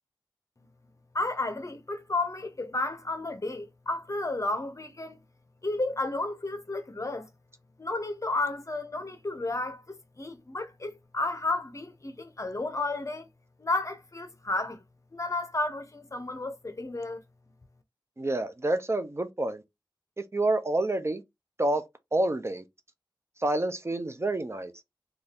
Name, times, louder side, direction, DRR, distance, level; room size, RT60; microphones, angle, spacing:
voice 1, 1.1-5.2 5.6-7.3 7.8-13.3 13.6-14.8 15.1-17.2, left 2 dB, 40° left, 0.6 m, -32 dB
voice 2, 18.2-19.6 20.3-21.2 21.6-21.9 22.1-22.6 23.4-24.7, right 2 dB, 35° right, 0.5 m, -28 dB
2.6 x 2.3 x 3.4 m
wide cardioid pair, 55°, 8 cm